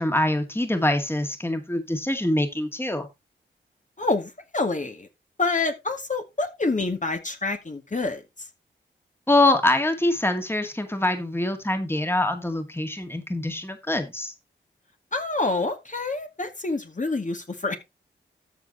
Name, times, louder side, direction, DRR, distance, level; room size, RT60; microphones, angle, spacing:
voice 1, 0.0-3.1 9.3-14.3, left 1 dB, 10° left, 2.1 m, -24 dB
voice 2, 4.0-5.1 5.4-8.5 15.1-17.8, left 3 dB, 40° left, 2.2 m, -27 dB
13.5 x 4.7 x 4.2 m
cardioid pair, 40°, 20 cm